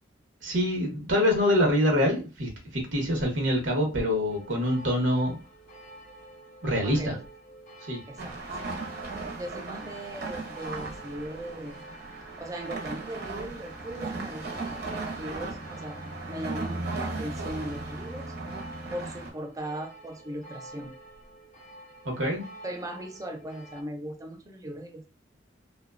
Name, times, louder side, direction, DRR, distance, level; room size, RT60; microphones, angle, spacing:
voice 1, 0.4-5.4 6.6-7.2 7.9-8.0 22.0-22.4, left 1 dB, 85° right, 0 dB, 0.8 m, -25 dB
sound 1, 4.3-23.8, right 1 dB, 45° left, 0.5 m, -49 dB
voice 2, 6.8-7.2 8.1-8.4 9.4-11.8 12.4-18.3 18.9-21.0 22.6-25.1, right 1 dB, 20° right, 5 dB, 0.4 m, -38 dB
sound 2, 8.2-19.3, right 3 dB, 55° right, 0.6 m, -37 dB
2.8 x 2.1 x 2.3 m, 0.31 s
head